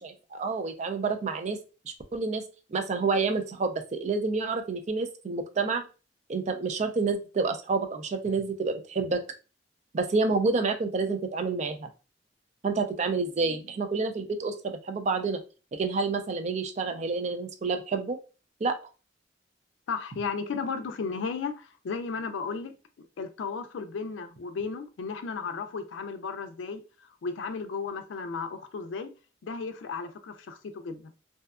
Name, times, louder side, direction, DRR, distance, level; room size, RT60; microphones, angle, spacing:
voice 1, 0.0-1.6 1.9-2.4 2.7-5.8 6.3-9.2 9.9-11.9 12.6-15.4 15.7-18.2 18.6-18.8, right 4 dB, 40° right, 0.4 m, -28 dB
voice 2, 19.9-22.7 23.2-26.8 27.2-29.1 29.4-31.1, left 5 dB, 90° left, 0.4 m, -34 dB
2.6 x 2.3 x 2.2 m
head